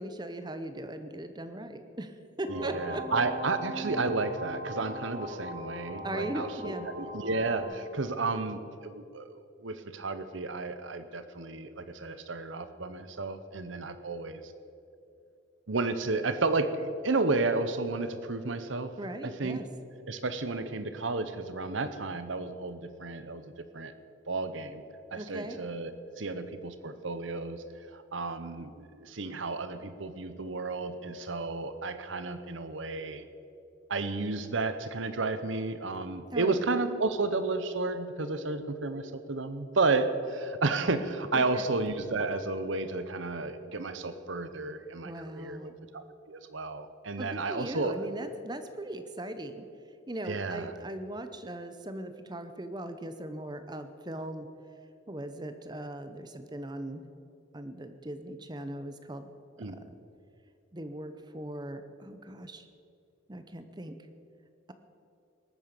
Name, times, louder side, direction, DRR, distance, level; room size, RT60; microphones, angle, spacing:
voice 1, 0.0-3.1 6.0-6.8 19.0-19.7 25.2-25.6 36.3-36.6 41.3-41.7 45.0-45.8 47.2-49.7 50.1-54.5 55.1-57.0 57.5-59.3 59.6-60.0 60.7-62.7 63.3-64.0, right 1 dB, 20° right, 9 dB, 0.8 m, -39 dB
sound 1, 2.4-7.6, equal, 40° right, 4.2 m, -39 dB
voice 2, 2.5-14.5 15.7-18.9 19.2-19.6 20.1-23.9 24.3-24.8 25.1-27.6 27.9-33.2 33.9-48.1 50.3-50.8 59.6-59.8, right 3 dB, 80° right, 11 dB, 0.9 m, -32 dB
19.5 x 9.0 x 6.8 m, 2.7 s
head